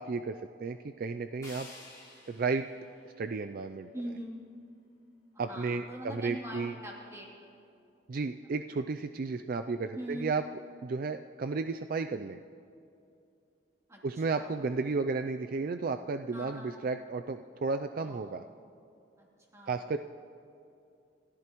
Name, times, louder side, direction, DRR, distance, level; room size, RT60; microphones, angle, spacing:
voice 1, 0.0-1.7 2.3-2.6 3.0-3.9 5.4-6.7 8.1-10.4 10.8-12.4 14.0-18.4 19.7-20.0, right 4 dB, 50° right, 8 dB, 0.4 m, -33 dB
sound 1, 1.4-4.4, left 2 dB, 20° left, 4.2 m, -53 dB
voice 2, 3.9-4.4 5.4-7.5 9.9-10.3 13.9-14.5 16.3-16.8 17.9-18.6 19.2-19.3 19.5-19.8, equal, 15° right, -3 dB, 2.9 m, -43 dB
29.0 x 14.0 x 3.0 m, 2.6 s
head